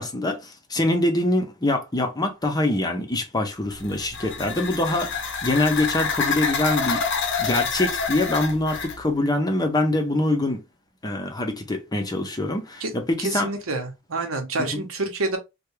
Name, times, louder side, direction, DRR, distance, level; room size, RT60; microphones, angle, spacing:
voice 1, 0.0-7.0 7.4-10.6 11.0-13.5 14.7-14.8, left 2 dB, 20° left, 0.6 m, -24 dB
sound 1, 3.7-9.0, left 5 dB, 60° left, 0.6 m, -27 dB
voice 2, 13.2-15.4, right 2 dB, 70° right, 0.9 m, -28 dB
3.3 x 2.2 x 3.1 m
head